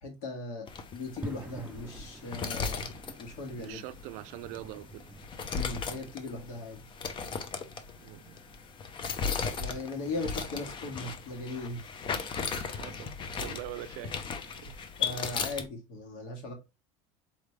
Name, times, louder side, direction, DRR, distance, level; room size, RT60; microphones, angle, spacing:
voice 1, 0.0-0.7 0.9-3.8 5.5-6.8 9.5-11.8 15.0-16.5, left 2 dB, 70° left, 2.0 m, -38 dB
sound 1, 0.7-15.7, left 5 dB, 35° left, 0.7 m, -37 dB
sound 2, 1.2-11.4, right 2 dB, 10° right, 0.5 m, -51 dB
voice 2, 3.6-5.1 8.0-8.4 12.4-13.1 13.4-14.8, right 14 dB, 65° right, 0.5 m, -43 dB
4.1 x 3.3 x 3.1 m
supercardioid pair, 110°, 14 cm